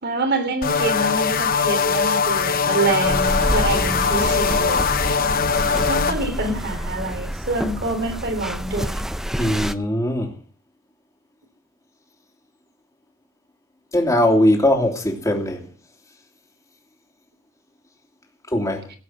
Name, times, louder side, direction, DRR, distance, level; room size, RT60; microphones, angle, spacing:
voice 1, 0.0-4.8 5.9-9.0, right 2 dB, 55° right, 3.3 m, -26 dB
sound 1, 0.6-6.1, left 5 dB, 45° left, 0.9 m, -21 dB
sound 2, 3.0-9.7, equal, ahead, 0.7 m, -27 dB
voice 2, 9.4-10.3 13.9-15.6 18.5-18.8, left 1 dB, 15° left, 2.9 m, -20 dB
17.5 x 8.2 x 7.9 m
head